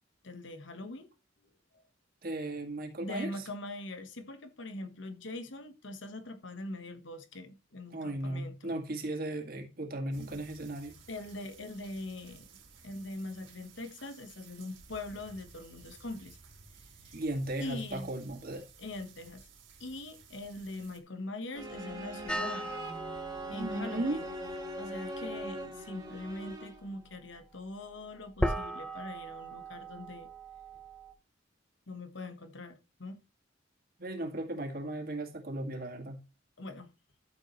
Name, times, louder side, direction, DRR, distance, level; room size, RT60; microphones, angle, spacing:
voice 1, 0.2-1.1 3.0-8.7 11.1-12.5 12.8-16.4 17.1-17.2 17.6-18.1 18.8-19.5 19.8-22.7 23.5-24.2 24.8-30.3 31.9-33.2 36.6-36.9, left 2 dB, 65° left, 1.3 m, -42 dB
voice 2, 2.2-3.5 7.9-10.9 17.1-18.6 23.5-24.2 34.0-36.2, right 1 dB, 50° right, 2.1 m, -36 dB
sound 1, 10.1-21.0, right 5 dB, 75° right, 2.8 m, -56 dB
sound 2, 21.5-27.0, equal, 20° right, 2.2 m, -41 dB
sound 3, 22.3-31.1, right 1 dB, 5° left, 0.8 m, -39 dB
12.5 x 6.9 x 3.1 m
head